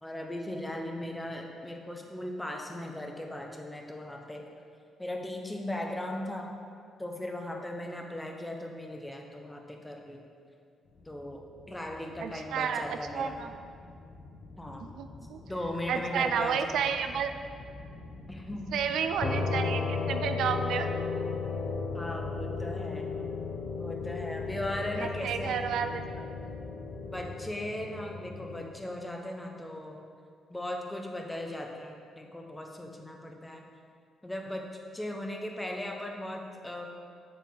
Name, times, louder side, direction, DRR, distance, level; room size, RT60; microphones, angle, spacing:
voice 1, 0.0-4.4 5.0-6.5 7.0-10.2 11.0-13.4 14.6-14.9 15.5-16.7 18.3-19.0 21.9-23.1 23.8-25.6 27.0-30.1 30.5-33.6 34.2-34.7 34.9-36.9, left 1 dB, 10° left, 2 dB, 0.9 m, -38 dB
sound 1, 10.8-27.3, left 2 dB, 65° left, 1.6 m, -47 dB
voice 2, 12.2-13.5 14.8-15.4 15.9-17.3 18.7-20.9 25.0-26.3, right 7 dB, 75° right, 8 dB, 0.4 m, -31 dB
sound 2, 19.2-28.7, left 4 dB, 50° left, 0.9 m, -35 dB
7.3 x 6.7 x 3.9 m, 2.3 s
cardioid pair, 90°, 0 cm